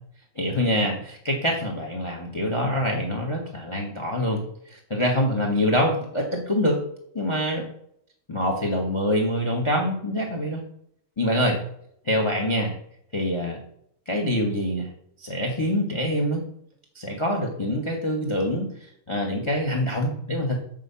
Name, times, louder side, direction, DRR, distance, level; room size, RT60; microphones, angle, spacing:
voice 1, 0.3-6.8 7.1-7.7 8.3-10.6 11.2-11.6 12.0-12.7 13.1-13.6 14.1-14.9 15.2-16.5 16.9-18.7 19.1-20.6, equal, 15° left, 3 dB, 1.2 m, -25 dB
9.5 x 4.8 x 7.0 m, 0.69 s
omnidirectional pair, 2.4 m